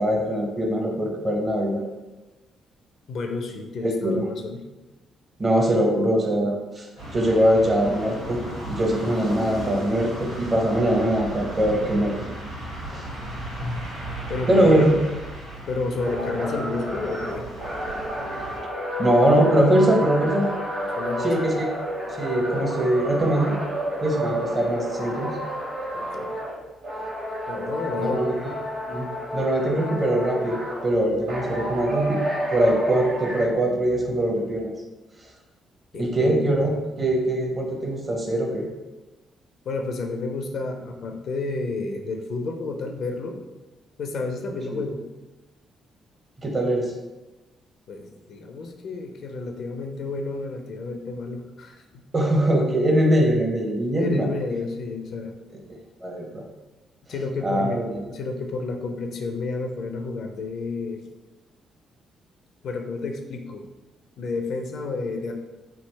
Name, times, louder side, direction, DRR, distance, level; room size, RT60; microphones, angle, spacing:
voice 1, 0.0-1.8 3.8-4.3 5.4-6.9 7.1-8.4 8.7-12.2 12.9-13.1 14.4-14.9 19.0-20.5 21.2-21.7 22.2-23.6 24.0-25.3 28.0-28.4 28.9-30.6 30.8-32.2 32.5-34.7 35.9-36.7 37.0-38.7 46.4-46.9 52.1-54.3 56.0-56.4 57.4-58.0, right 1 dB, 30° right, 0 dB, 0.6 m, -22 dB
voice 2, 3.1-4.7 14.3-15.0 15.7-17.5 21.0-21.6 25.9-26.4 27.5-28.3 35.9-36.6 39.7-43.4 44.0-45.0 47.9-52.0 53.9-55.3 57.1-57.8 58.1-61.1 62.6-63.7 64.2-65.3, left 3 dB, 55° left, 4 dB, 0.4 m, -31 dB
sound 1, 7.0-18.6, right 1 dB, 90° right, 1.4 m, -35 dB
sound 2, 16.0-26.6 26.8-30.8 31.3-33.4, equal, 65° right, 1.2 m, -30 dB
3.4 x 2.5 x 3.0 m, 1.1 s
figure-of-eight pair, 40°, 0 cm